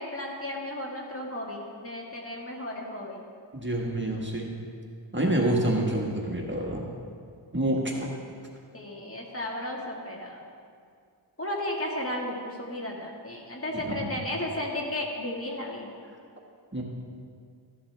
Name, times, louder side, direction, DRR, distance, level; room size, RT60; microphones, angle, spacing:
voice 1, 0.0-3.2 7.9-8.0 8.7-10.4 11.4-15.9, left 1 dB, 30° left, -2 dB, 1.7 m, -34 dB
voice 2, 3.5-4.5 5.1-6.9 7.5-8.1 13.9-14.1 16.7-16.8, right 1 dB, 25° right, -2 dB, 1.3 m, -27 dB
14.5 x 11.0 x 3.4 m, 2.2 s
wide cardioid pair, 85°, 46 cm